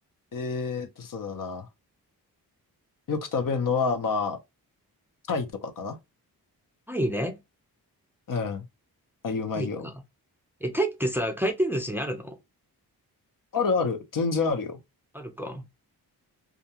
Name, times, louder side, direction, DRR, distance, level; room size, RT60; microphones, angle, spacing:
voice 1, 0.3-1.7 3.1-4.4 5.3-6.0 8.3-8.6 9.2-9.8 13.5-14.8, left 4 dB, 55° left, 0.7 m, -28 dB
voice 2, 6.9-7.4 9.5-9.9 10.6-12.4 15.1-15.7, right 1 dB, 5° right, 0.5 m, -28 dB
2.4 x 2.2 x 2.8 m
cardioid pair, 70°, 38 cm